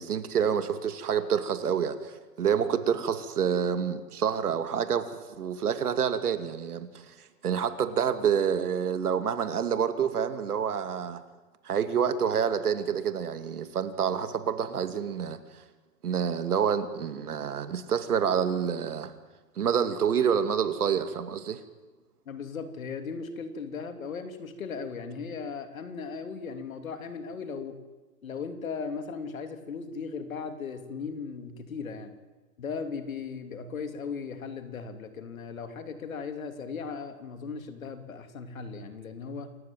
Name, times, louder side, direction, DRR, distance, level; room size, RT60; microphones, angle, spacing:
voice 1, 0.0-6.9 7.4-11.2 11.6-15.4 16.0-19.1 19.6-21.6, right 7 dB, 75° right, 10 dB, 2.5 m, -28 dB
voice 2, 22.3-27.8 28.2-32.1 32.6-39.6, left 5 dB, 60° left, 8 dB, 2.9 m, -37 dB
28.0 x 14.5 x 9.3 m, 1.2 s
hypercardioid pair, 180°, 45 cm